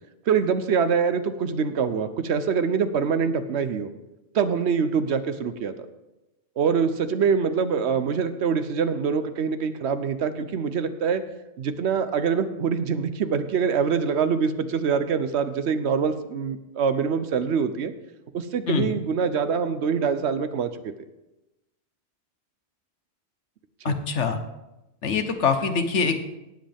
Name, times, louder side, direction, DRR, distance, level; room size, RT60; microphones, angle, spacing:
voice 1, 0.3-3.9 4.3-5.7 6.6-11.2 11.6-17.9 18.3-20.9 23.9-24.0, right 6 dB, 70° right, 11 dB, 1.0 m, -24 dB
voice 2, 23.8-24.4 25.0-26.2, left 5 dB, 85° left, 8 dB, 1.3 m, -24 dB
18.0 x 7.7 x 3.5 m, 0.96 s
omnidirectional pair, 1.2 m